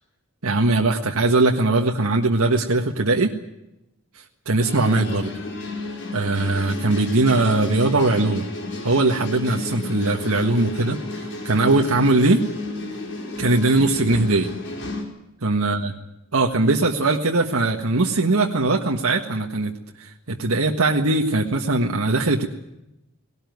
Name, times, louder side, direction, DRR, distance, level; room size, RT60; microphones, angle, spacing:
voice 1, 0.4-3.3 4.2-5.3 6.1-8.5 8.8-12.4 13.4-14.5 15.4-15.9 16.3-19.7 20.0-22.5, right 2 dB, 75° right, 1 dB, 1.5 m, -20 dB
sound 1, 4.6-15.0, left 2 dB, 55° left, 5.3 m, -32 dB
19.0 x 18.0 x 9.4 m, 0.90 s
head